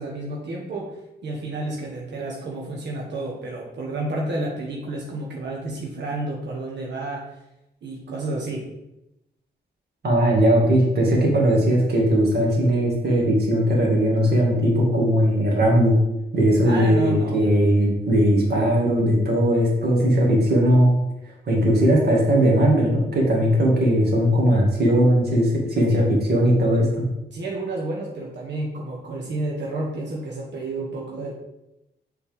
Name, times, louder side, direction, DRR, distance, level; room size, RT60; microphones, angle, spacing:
voice 1, 0.0-7.3 7.8-8.7 16.6-17.4 25.9-26.0 27.3-31.3, right 2 dB, 85° right, -3 dB, 1.2 m, -30 dB
voice 2, 10.0-15.9 16.3-20.9 21.5-27.0, equal, 65° right, -2 dB, 2.2 m, -19 dB
7.1 x 4.3 x 3.6 m, 0.90 s
wide cardioid pair, 120°, 18 cm